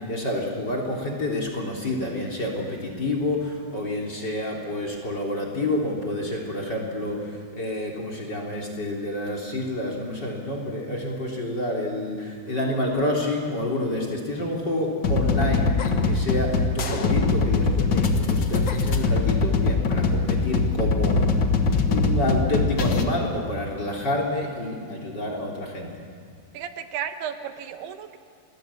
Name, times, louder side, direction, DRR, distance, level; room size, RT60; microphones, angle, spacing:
voice 1, 0.1-15.7 16.0-21.3 21.9-25.9, left 1 dB, 25° left, 1 dB, 3.5 m, -28 dB
sound 1, 15.0-23.0, left 4 dB, 60° left, 1.2 m, -22 dB
voice 2, 26.5-28.2, right 8 dB, 85° right, 8 dB, 3.2 m, -34 dB
29.0 x 20.5 x 8.5 m, 2.1 s
omnidirectional pair, 4.6 m